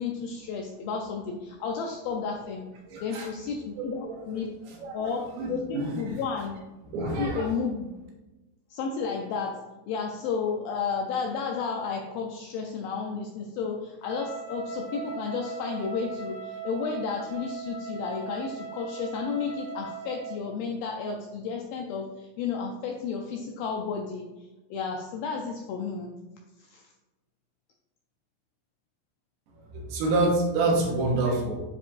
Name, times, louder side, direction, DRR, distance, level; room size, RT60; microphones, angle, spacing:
voice 1, 0.0-2.6 3.0-4.5 4.9-6.5 7.2-7.9 8.7-26.1 26.6-26.9, left 5 dB, 85° left, 1 dB, 2.1 m, -32 dB
voice 2, 2.9-3.3 3.8-6.2 6.9-7.5 29.7-31.6, right 2 dB, 75° right, -1 dB, 3.1 m, -28 dB
Wind instrument woodwind instrument, 14.0-20.4, right 6 dB, 70° left, 3.0 m, -39 dB
10.0 x 4.5 x 2.5 m, 1.1 s
omnidirectional pair, 4.8 m